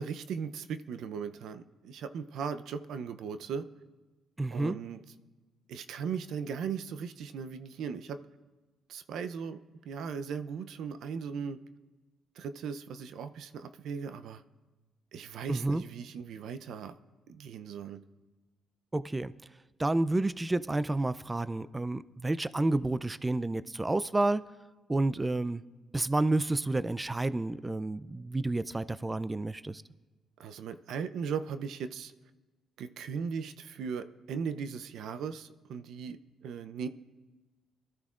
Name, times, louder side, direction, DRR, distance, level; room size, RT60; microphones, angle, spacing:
voice 1, 0.0-3.6 4.5-5.0 5.7-8.2 8.9-9.6 9.9-11.6 12.4-14.4 15.1-17.0 17.3-18.0 30.4-32.1 32.8-36.9, right 6 dB, 75° right, 11 dB, 0.6 m, -38 dB
voice 2, 4.4-4.8 15.5-15.8 18.9-19.3 19.8-24.4 24.9-25.6 25.9-29.8, right 2 dB, 15° right, 15 dB, 0.3 m, -30 dB
23.0 x 13.0 x 2.4 m, 1.3 s
cardioid pair, 90°, 0 cm